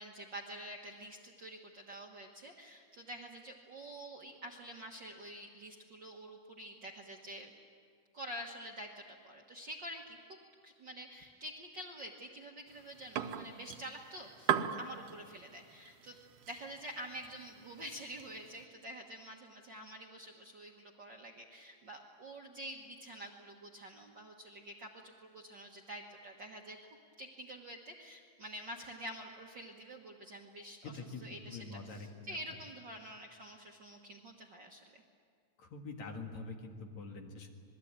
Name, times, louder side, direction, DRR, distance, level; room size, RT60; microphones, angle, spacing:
voice 1, 0.0-7.5 8.1-10.2 10.6-16.1 16.5-26.8 27.2-35.0, equal, 50° right, 1 dB, 1.5 m, -48 dB
sound 1, 12.7-18.6, right 9 dB, 80° right, 2.6 m, -40 dB
voice 2, 30.8-32.4 35.6-37.5, left 3 dB, 60° left, 3 dB, 3.0 m, -45 dB
26.5 x 21.0 x 8.8 m, 2.2 s
omnidirectional pair, 3.7 m